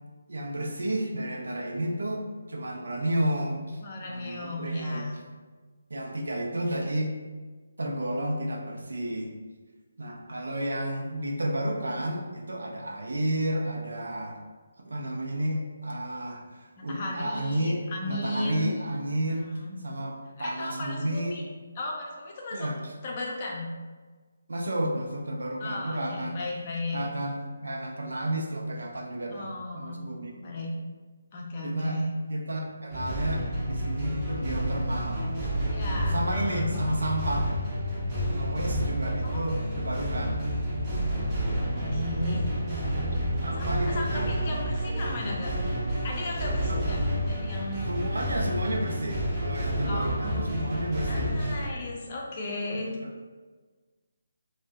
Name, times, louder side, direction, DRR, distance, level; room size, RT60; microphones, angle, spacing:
voice 1, 0.3-5.1 5.9-7.1 7.8-9.3 10.0-14.4 14.8-19.5 19.8-21.4 22.5-22.9 24.5-26.4 26.9-30.4 31.6-32.0 32.3-35.3 36.1-37.5 38.3-40.4 43.4-44.4 46.7-46.9 47.9-51.5 52.8-53.1, right 1 dB, 65° right, 1 dB, 0.5 m, -31 dB
voice 2, 3.8-5.1 16.8-18.7 19.5-19.8 20.4-21.4 21.8-22.7 23.0-23.7 25.6-27.0 29.3-30.1 30.3-30.7 31.3-32.1 35.7-36.7 39.2-39.4 41.7-42.5 43.6-45.5 46.0-47.0 47.3-47.8 48.9-49.0 49.9-50.6 51.0-53.0, left 1 dB, 35° left, -2 dB, 0.5 m, -35 dB
sound 1, 32.9-51.7, equal, 20° right, 0.6 m, -29 dB
2.5 x 2.1 x 3.4 m, 1.4 s
figure-of-eight pair, 145°, 0 cm